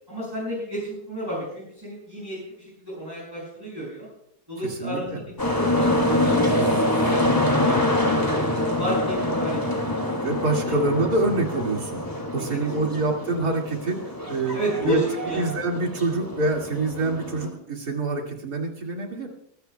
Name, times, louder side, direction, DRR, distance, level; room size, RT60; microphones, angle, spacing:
voice 1, 0.1-4.1 4.5-8.5 8.8-9.9 10.5-10.8 12.3-12.9 14.5-15.4, right 1 dB, 15° right, -7 dB, 6.7 m, -32 dB
sound 1, 5.4-17.5, left 1 dB, 15° left, 2.3 m, -25 dB
voice 2, 10.2-12.0 12.3-15.0 15.3-19.3, right 2 dB, 80° right, 1 dB, 2.9 m, -26 dB
23.5 x 15.0 x 2.3 m, 0.73 s
omnidirectional pair, 1.6 m